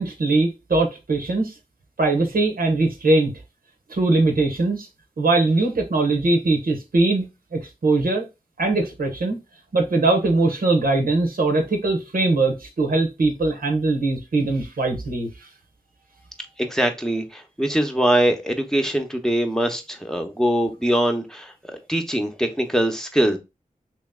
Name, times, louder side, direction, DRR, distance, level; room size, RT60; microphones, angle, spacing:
voice 1, 0.0-1.5 2.0-3.3 3.9-4.9 5.2-7.3 7.5-8.2 8.6-9.4 9.7-15.3, right 2 dB, 85° right, 0.9 m, -21 dB
voice 2, 16.6-21.5 21.9-23.4, right 1 dB, 5° left, 0.8 m, -22 dB
3.1 x 2.9 x 3.6 m
cardioid pair, 45°, 15 cm